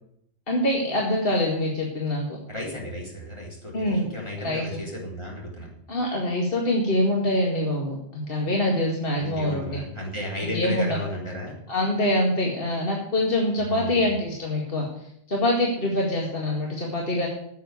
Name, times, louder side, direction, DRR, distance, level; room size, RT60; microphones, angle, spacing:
voice 1, 0.5-2.4 3.7-4.1 4.4-4.8 5.9-9.8 10.4-11.0 11.7-14.9 15.3-17.3, left 1 dB, 50° left, -1 dB, 2.2 m, -25 dB
voice 2, 2.5-5.7 9.2-11.6 13.7-14.0, left 1 dB, 25° left, -2 dB, 4.1 m, -34 dB
9.5 x 8.2 x 9.4 m, 0.72 s
omnidirectional pair, 1.2 m